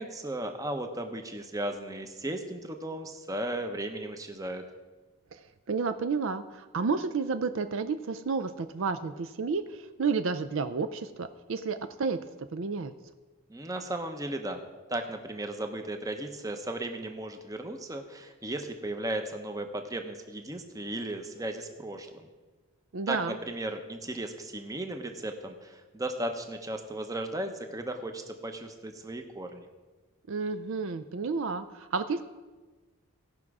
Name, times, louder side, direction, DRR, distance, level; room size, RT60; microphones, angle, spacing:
voice 1, 0.0-4.6 13.5-14.6 14.9-22.3 23.1-29.7, right 1 dB, 15° right, 6 dB, 0.8 m, -36 dB
voice 2, 5.3-12.9 22.9-23.4 30.3-32.2, right 4 dB, 60° right, 10 dB, 0.4 m, -31 dB
17.5 x 6.1 x 4.8 m, 1.3 s
head